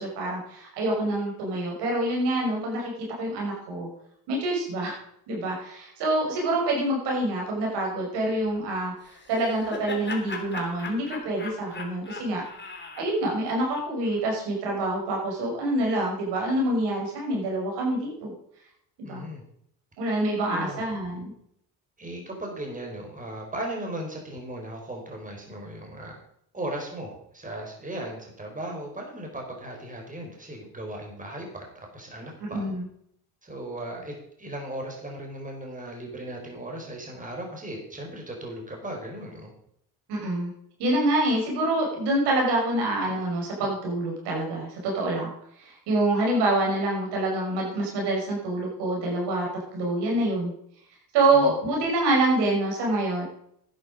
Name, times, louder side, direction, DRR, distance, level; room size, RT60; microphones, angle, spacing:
voice 1, 0.0-2.9 3.2-3.9 4.3-5.0 5.3-12.4 13.0-18.3 19.0-19.3 20.0-21.3 32.4-32.9 40.1-40.5 40.8-49.5 49.7-50.5 51.1-53.2, right 2 dB, 85° right, -1 dB, 5.6 m, -26 dB
Laughter, 9.1-14.2, left 4 dB, 25° left, 3.0 m, -39 dB
voice 2, 19.0-19.4 20.5-20.8 22.0-26.2 26.5-32.6 33.4-39.5 51.3-51.5, right 1 dB, 20° right, 1 dB, 4.5 m, -37 dB
11.5 x 10.0 x 5.2 m, 0.71 s
cardioid pair, 85°, 40 cm